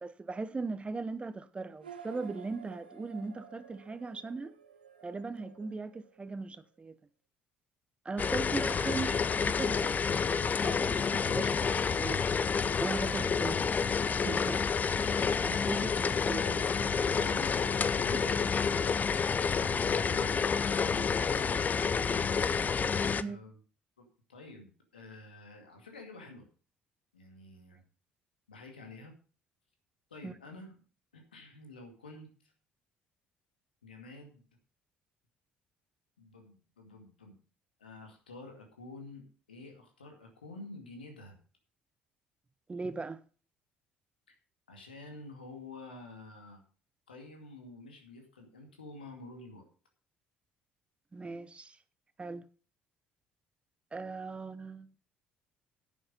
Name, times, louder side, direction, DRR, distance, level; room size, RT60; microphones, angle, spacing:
voice 1, 0.0-4.5 5.0-7.0 8.0-9.9 10.6-12.2 12.8-13.6 14.1-14.7 15.0-16.4 16.8-16.9 23.2-23.4 30.2-30.3 42.7-43.2 51.1-51.8 52.2-52.5 53.9-54.9, right 3 dB, 20° right, 0.8 m, -39 dB
sound 1, 1.8-6.6, right 7 dB, 85° right, 1.0 m, -52 dB
sound 2, 8.2-23.2, left 6 dB, 35° left, 0.6 m, -29 dB
voice 2, 16.9-18.5 19.5-22.3 22.7-23.6 24.0-26.5 27.1-27.8 28.5-29.2 30.1-30.8 31.1-32.3 33.8-34.4 36.2-37.4 37.8-41.4 44.3-44.4 44.7-46.6 47.1-49.7, left 2 dB, 85° left, 2.3 m, -49 dB
10.5 x 8.5 x 5.3 m
figure-of-eight pair, 50°, 5 cm